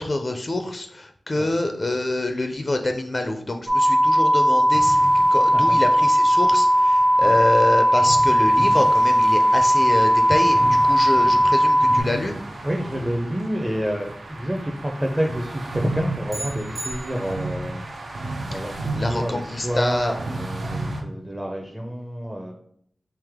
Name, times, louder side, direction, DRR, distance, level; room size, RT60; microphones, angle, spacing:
voice 1, 0.0-12.4 18.5-18.6 18.9-20.2, left 2 dB, 45° left, 5 dB, 0.4 m, -26 dB
sound 1, 3.7-12.0, equal, 30° right, 0.9 m, -17 dB
sound 2, 4.7-21.0, right 2 dB, 80° right, 0.6 m, -34 dB
voice 2, 12.6-22.5, equal, 15° right, 1 dB, 0.5 m, -28 dB
sound 3, 16.3-17.7, right 1 dB, 60° right, 0.9 m, -36 dB
3.3 x 3.0 x 3.5 m, 0.66 s
cardioid pair, 50°, 0 cm